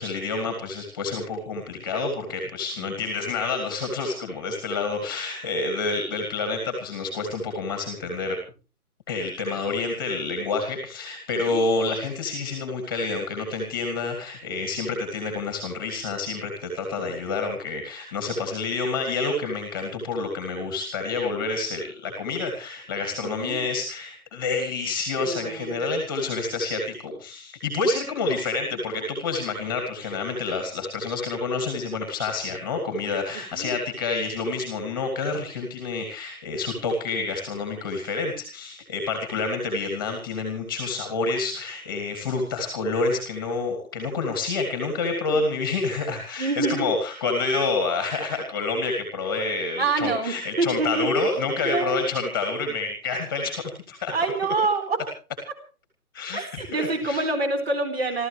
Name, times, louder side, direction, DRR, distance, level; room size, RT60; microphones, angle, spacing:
voice 1, 0.0-8.4 9.1-54.1 56.1-57.2, left 3 dB, 15° left, 4 dB, 2.3 m, -28 dB
voice 2, 11.3-11.7 17.4-17.5 23.2-23.7 25.1-25.8 33.3-33.7 45.3-45.4 46.4-46.9 49.8-51.1 51.6-52.0 54.1-55.0 56.3-58.3, right 3 dB, 40° right, 8 dB, 4.4 m, -27 dB
28.0 x 14.0 x 3.3 m, 0.36 s
hypercardioid pair, 175°, 46 cm